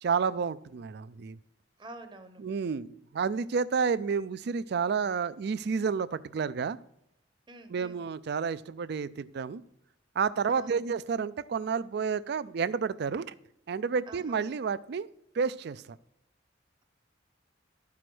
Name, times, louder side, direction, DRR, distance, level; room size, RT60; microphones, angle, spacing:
voice 1, 0.0-1.4 2.4-6.8 7.7-9.6 10.2-13.3 13.7-15.1 15.3-16.0, right 5 dB, 60° right, 17 dB, 0.4 m, -30 dB
voice 2, 1.8-2.4 7.5-8.0 10.5-10.8 14.1-14.4, right 2 dB, 25° right, 7 dB, 0.8 m, -47 dB
12.0 x 4.8 x 6.0 m, 0.80 s
head